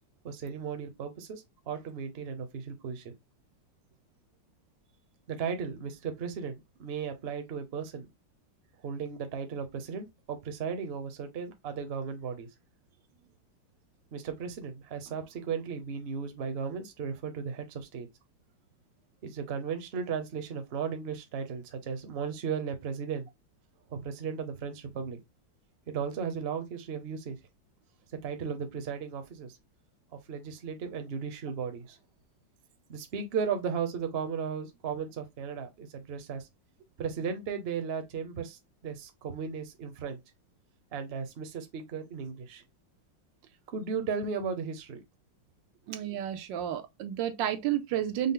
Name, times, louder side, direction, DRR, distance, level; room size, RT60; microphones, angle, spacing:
voice 1, 0.2-3.1 5.3-8.1 8.8-12.5 14.1-18.1 19.2-23.3 23.9-25.2 25.9-27.4 28.2-29.5 30.3-32.0 32.9-36.5 37.0-40.2 40.9-42.6 43.7-45.0, right 6 dB, 50° right, 0.8 m, -35 dB
voice 2, 45.9-48.3, right 10 dB, 80° right, 1.3 m, -31 dB
5.5 x 2.0 x 3.7 m
omnidirectional pair, 2.0 m